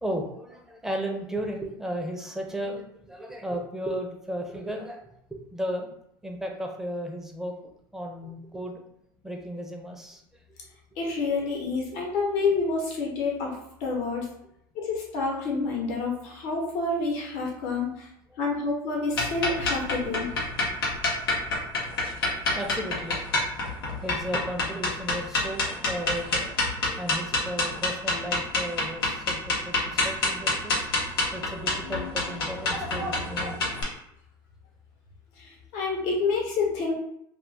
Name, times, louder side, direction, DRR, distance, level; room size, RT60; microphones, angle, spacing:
voice 1, 0.0-5.9 6.2-8.8 9.2-10.2 11.0-11.2 11.9-12.0 21.2-22.1 22.5-23.5 24.0-30.8 31.3-33.7, equal, 5° right, 1 dB, 0.7 m, -35 dB
voice 2, 11.0-14.3 14.7-18.1 18.4-20.3 35.4-36.9, left 3 dB, 65° left, -2 dB, 1.1 m, -28 dB
sound 1, 19.1-33.8, left 2 dB, 90° left, 0.9 m, -27 dB
2.5 x 2.4 x 3.4 m, 0.75 s
hypercardioid pair, 90°, 12 cm